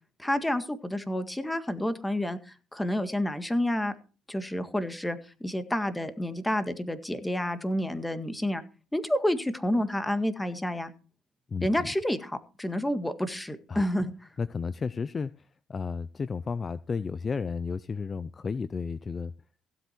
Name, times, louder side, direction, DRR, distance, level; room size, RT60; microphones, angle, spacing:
voice 1, 0.2-2.4 2.7-3.9 4.3-8.6 8.9-10.9 11.6-14.1, left 1 dB, 10° left, 1.8 m, -29 dB
voice 2, 11.5-11.9 13.7-13.8 14.4-19.3, left 5 dB, 35° left, 0.6 m, -33 dB
16.0 x 8.0 x 4.5 m
supercardioid pair, 80°, 0 cm